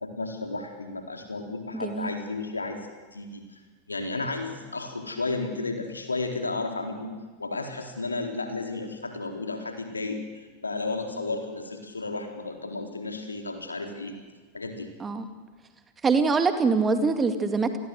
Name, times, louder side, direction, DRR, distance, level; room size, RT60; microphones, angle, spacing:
voice 1, 0.0-2.8 3.1-3.6 3.9-7.1 7.4-14.1 14.5-14.9, left 3 dB, 80° left, 4 dB, 4.0 m, -33 dB
voice 2, 1.7-2.1 15.0-15.2 16.0-17.8, right 4 dB, 15° right, 8 dB, 2.4 m, -24 dB
29.5 x 20.0 x 8.2 m, 1.4 s
figure-of-eight pair, 90°, 0 cm